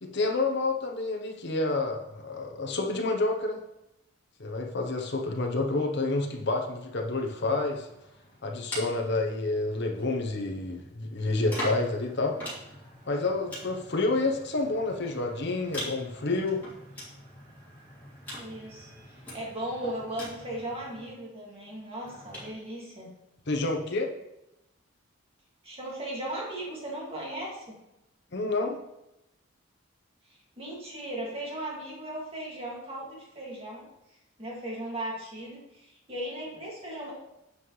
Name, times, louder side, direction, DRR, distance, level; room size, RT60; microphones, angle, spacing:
voice 1, 0.0-3.6 4.4-7.9 8.4-12.4 13.1-16.6 23.5-24.1 28.3-28.8, left 2 dB, 55° left, 1 dB, 1.0 m, -29 dB
sound 1, 7.0-10.2 11.1-21.2 22.0-22.5, equal, 10° left, 2.8 m, -43 dB
voice 2, 18.4-23.1 25.6-27.8 30.3-33.9 34.4-37.1, right 1 dB, 30° right, -4 dB, 2.3 m, -37 dB
8.4 x 5.5 x 3.2 m, 0.90 s
head